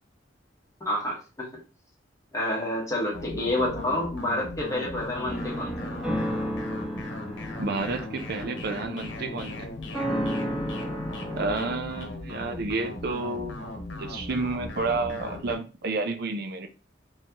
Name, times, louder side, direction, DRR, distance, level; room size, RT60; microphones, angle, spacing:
voice 1, 0.8-1.6 2.3-5.9, left 1 dB, 15° left, 1.3 m, -29 dB
sound 1, 3.1-15.5, left 2 dB, 75° left, 1.0 m, -38 dB
sound 2, 5.3-11.8, equal, 5° right, 2.0 m, -33 dB
voice 2, 7.6-9.7 11.3-16.7, right 3 dB, 55° right, 0.6 m, -30 dB
4.4 x 2.9 x 2.9 m
head